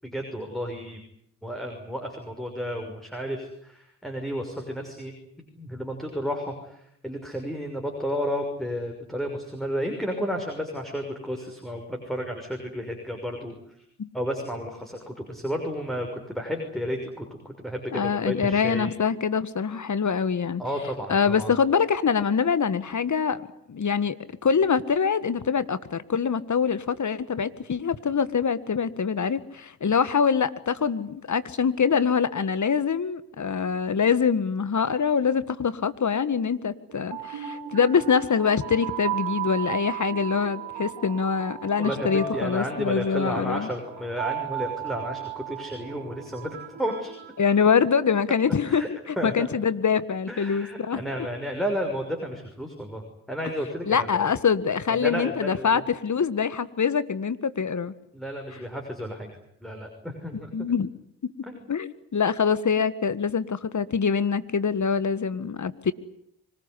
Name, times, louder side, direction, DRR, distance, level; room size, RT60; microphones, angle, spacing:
voice 1, 0.0-1.0 1.4-5.1 5.5-13.6 14.1-18.9 20.6-21.5 41.8-47.2 48.7-48.9 49.2-49.5 50.3-53.0 53.3-54.3 54.9-55.8 58.1-59.3 59.6-60.7 61.5-61.6, equal, ahead, 2 dB, 6.2 m, -32 dB
voice 2, 17.9-20.6 21.1-23.4 23.7-24.2 24.4-43.7 47.4-51.0 53.9-57.9 60.5-60.9 61.7-65.9, left 6 dB, 40° left, 15 dB, 1.8 m, -24 dB
sound 1, 36.9-48.0, right 10 dB, 70° right, 4.8 m, -35 dB
25.0 x 19.5 x 9.9 m, 0.73 s
hypercardioid pair, 40°, 44 cm